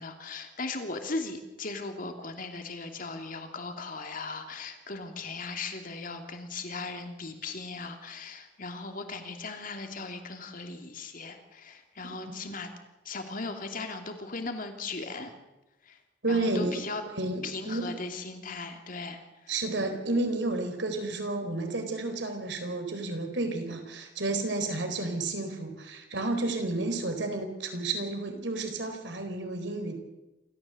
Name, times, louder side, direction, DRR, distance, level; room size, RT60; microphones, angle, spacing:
voice 1, 0.0-12.7 13.0-15.3 15.9-16.0 16.3-17.0 17.4-19.2, left 3 dB, 50° left, 5 dB, 2.9 m, -38 dB
voice 2, 16.2-16.8 17.2-17.8 19.5-30.0, right 2 dB, 70° right, 6 dB, 4.0 m, -31 dB
28.0 x 14.0 x 8.0 m, 1.0 s
head